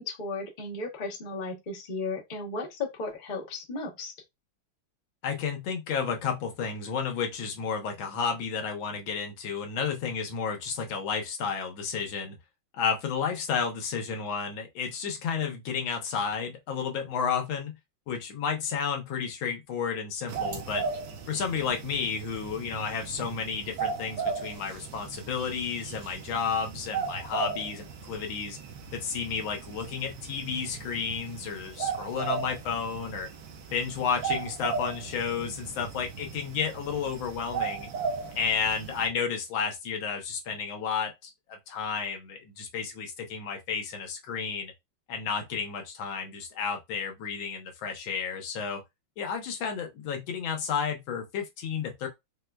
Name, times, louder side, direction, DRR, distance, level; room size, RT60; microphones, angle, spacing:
voice 1, 0.0-4.1, left 3 dB, 60° left, 0.5 m, -35 dB
voice 2, 5.2-12.4 12.7-17.8 18.1-20.9 21.3-28.6 28.9-33.3 33.7-37.9 38.3-44.7 45.1-48.8 49.2-52.1, left 6 dB, 85° left, 1.6 m, -32 dB
sound 1, 20.3-39.1, right 6 dB, 70° right, 1.2 m, -36 dB
4.6 x 2.2 x 2.2 m
omnidirectional pair, 2.1 m